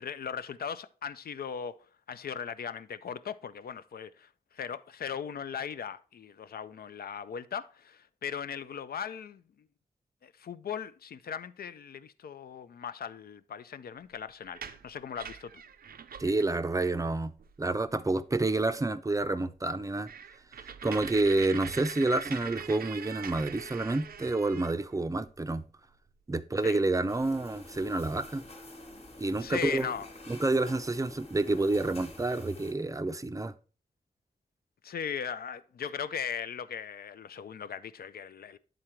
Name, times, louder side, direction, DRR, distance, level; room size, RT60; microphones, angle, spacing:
voice 1, 0.0-4.3 4.5-9.4 10.2-15.6 26.6-26.8 29.4-30.1 34.8-38.6, left 7 dB, 85° left, 0.4 m, -38 dB
sound 1, 14.4-16.6 17.0-17.1 17.4-17.8 18.3-18.4 18.8-18.9 19.2-19.3 19.7-25.3 26.7-26.9 27.2-28.5 29.1-29.2 29.4-30.0, right 7 dB, 85° right, 0.4 m, -44 dB
voice 2, 16.2-17.3 17.6-20.1 20.8-25.7 26.3-28.4 29.2-29.9 30.3-33.5, right 2 dB, 20° right, 0.4 m, -29 dB
sound 2, 27.1-32.7, left 1 dB, 40° left, 1.2 m, -48 dB
8.8 x 3.8 x 4.4 m
wide cardioid pair, 110°, 15 cm